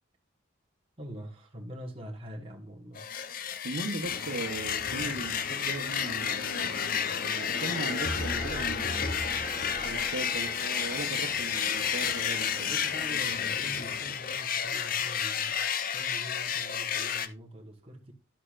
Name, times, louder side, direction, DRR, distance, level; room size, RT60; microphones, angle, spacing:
voice 1, 1.0-3.0 12.6-18.1, right 1 dB, 25° right, 1.2 m, -44 dB
sound 1, 2.9-17.3, left 8 dB, 45° left, 0.5 m, -31 dB
voice 2, 3.6-6.7 7.3-12.8, right 2 dB, 75° right, 1.0 m, -38 dB
sound 2, 4.0-14.5, left 2 dB, 70° left, 0.9 m, -41 dB
sound 3, 7.5-14.7, equal, 20° left, 1.2 m, -44 dB
11.5 x 6.5 x 2.5 m
head